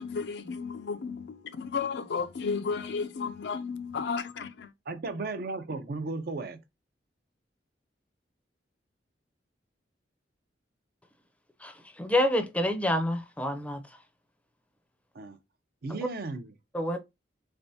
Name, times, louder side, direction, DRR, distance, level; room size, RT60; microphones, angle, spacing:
voice 1, 0.0-4.7, left 5 dB, 65° left, 0.4 m, -33 dB
voice 2, 4.9-6.6 15.1-15.4 15.8-16.5, right 3 dB, 55° right, 0.6 m, -35 dB
voice 3, 12.0-13.8 16.7-17.0, left 1 dB, 10° left, 0.5 m, -27 dB
3.3 x 3.3 x 2.7 m
head